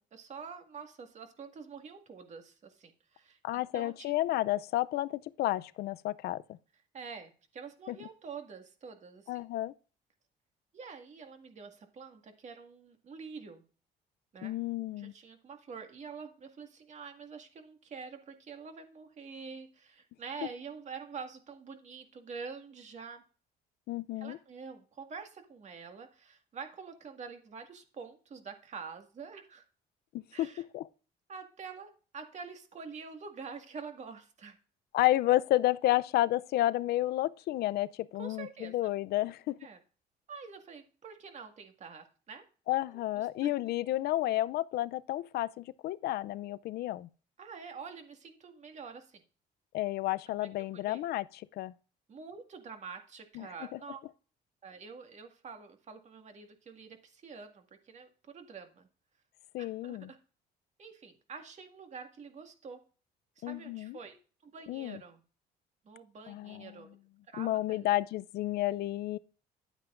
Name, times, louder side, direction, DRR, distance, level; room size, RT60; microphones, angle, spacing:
voice 1, 0.0-4.1 6.9-9.4 10.7-13.6 14.3-14.5 15.0-23.2 24.2-29.6 30.3-30.6 31.3-34.6 38.2-38.7 39.6-39.8 40.3-42.4 43.1-43.5 47.4-49.2 50.3-51.0 52.1-54.0 54.6-58.9 59.6-60.2 60.8-62.8 63.4-64.2 64.4-65.2 65.9-66.9 67.3-67.9, right 5 dB, 45° right, 1.8 m, -47 dB
voice 2, 3.4-6.4 7.9-8.0 9.3-9.7 14.4-15.1 23.9-24.4 30.1-30.9 34.9-39.6 42.7-47.1 49.7-51.7 53.4-53.8 59.5-60.1 63.4-64.0 64.7-65.0 66.3-66.7 67.4-69.2, left 15 dB, 70° left, 0.5 m, -31 dB
10.5 x 9.0 x 2.5 m
cardioid pair, 110°, 17 cm